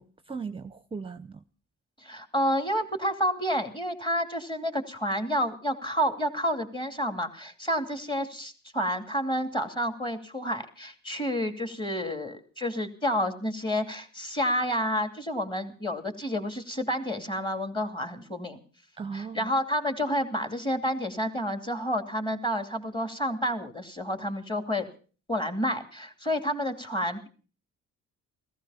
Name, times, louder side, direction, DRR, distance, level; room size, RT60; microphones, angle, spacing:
voice 1, 0.0-1.4 19.0-19.5, right 5 dB, 20° right, 0.8 m, -38 dB
voice 2, 2.0-18.6 19.1-24.9 25.3-27.3, equal, 15° left, 2.7 m, -29 dB
15.5 x 15.0 x 5.7 m
cardioid pair, 90°, 30 cm